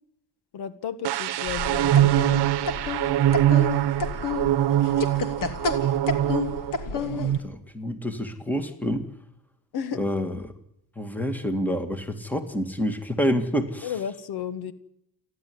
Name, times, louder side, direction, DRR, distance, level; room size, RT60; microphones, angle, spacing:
voice 1, 0.5-2.5 9.7-10.0 13.8-14.7, left 8 dB, 70° left, 12 dB, 1.8 m, -33 dB
sound 1, 1.0-6.8 7.1-7.4, right 12 dB, 80° right, 1.0 m, -23 dB
sound 2, 1.5-7.4, left 4 dB, 55° left, 2.8 m, -31 dB
voice 2, 6.9-9.1 9.9-10.5 11.0-13.9, equal, 5° left, 8 dB, 2.1 m, -28 dB
29.5 x 11.5 x 9.5 m, 0.76 s
cardioid pair, 165°, 40 cm